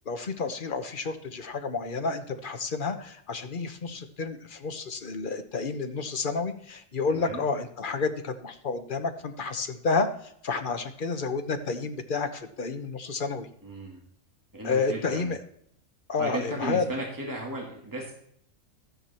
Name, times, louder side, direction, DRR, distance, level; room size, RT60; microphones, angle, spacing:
voice 1, 0.1-13.5 14.6-15.4 16.1-16.8, left 4 dB, 45° left, 8 dB, 1.1 m, -30 dB
voice 2, 13.6-14.0 14.5-15.3 16.2-18.1, right 1 dB, 15° right, -2 dB, 2.5 m, -35 dB
13.0 x 9.5 x 4.4 m, 0.68 s
omnidirectional pair, 1.3 m